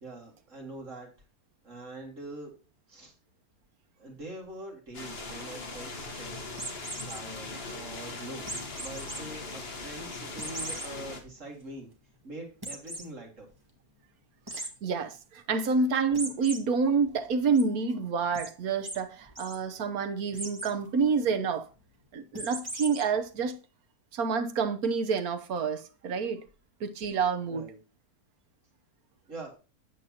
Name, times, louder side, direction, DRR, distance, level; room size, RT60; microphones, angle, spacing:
voice 1, 0.0-1.1 1.6-2.5 2.9-3.1 4.0-6.4 7.0-8.5 8.8-11.9 12.2-13.5 27.5-27.8 29.3-29.5, right 2 dB, 50° right, 2.4 m, -43 dB
sound 1, 4.9-11.2, left 3 dB, 40° left, 1.6 m, -40 dB
sound 2, 6.6-7.2 8.5-9.2 9.6-9.7 10.4-10.9 11.4-11.5 11.7-11.8 12.6-13.1 14.5-14.7 16.1-16.6 17.0-17.6 18.3-18.5 18.8-19.0 19.3-19.6 20.3-20.7 22.3-23.0, right 1 dB, 15° right, 1.5 m, -38 dB
voice 2, 14.5-21.7 22.1-23.6 24.1-26.4 26.8-27.6, right 5 dB, 65° right, 1.3 m, -28 dB
8.5 x 8.3 x 2.8 m
omnidirectional pair, 1.7 m